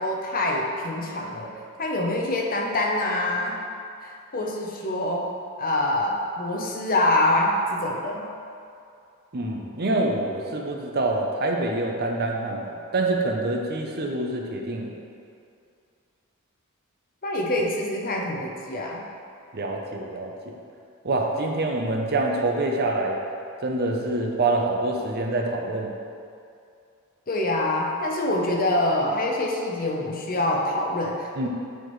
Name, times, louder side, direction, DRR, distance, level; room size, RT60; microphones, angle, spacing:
voice 1, 0.0-1.5 1.8-3.6 4.0-5.3 5.6-8.3 17.2-19.0 27.3-31.5, left 1 dB, 40° left, 0 dB, 0.7 m, -25 dB
voice 2, 9.3-14.9 19.5-20.3 21.0-23.2 23.6-25.9 31.4-31.5, right 2 dB, 45° right, 1 dB, 0.7 m, -26 dB
9.2 x 4.3 x 3.2 m, 2.5 s
head